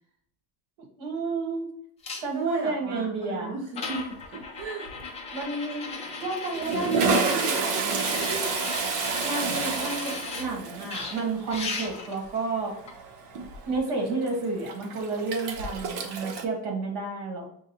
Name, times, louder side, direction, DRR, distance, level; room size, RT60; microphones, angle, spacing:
voice 1, 1.0-1.7 2.2-3.5 5.3-5.9 6.2-7.5 8.1-8.5 9.2-12.8 13.7-17.4, right 3 dB, 55° right, 1 dB, 1.6 m, -31 dB
sound 1, 2.0-2.2 3.2-3.3 3.7-10.5 10.9-12.1 12.9-13.0, left 4 dB, 15° left, 0.3 m, -36 dB
voice 2, 2.3-4.9 6.7-8.5, right 4 dB, 40° right, -2 dB, 0.7 m, -35 dB
Toilet flush, 4.2-4.6 4.9-5.0 6.0-16.4, right 4 dB, 80° right, 0.9 m, -30 dB
6.2 x 2.4 x 2.9 m, 0.69 s
cardioid pair, 170°, 48 cm